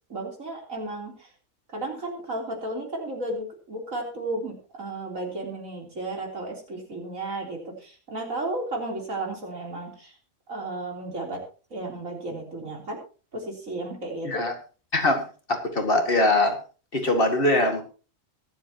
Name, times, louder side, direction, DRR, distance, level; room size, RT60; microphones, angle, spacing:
voice 1, 0.1-1.3 1.7-10.1 10.5-11.4 11.7-13.0 13.3-14.4, right 2 dB, 80° right, 0 dB, 4.1 m, -33 dB
voice 2, 14.9-15.2 15.5-16.6 16.9-17.8, left 2 dB, 45° left, 4 dB, 2.2 m, -22 dB
23.5 x 8.0 x 2.9 m, 0.36 s
omnidirectional pair, 1.4 m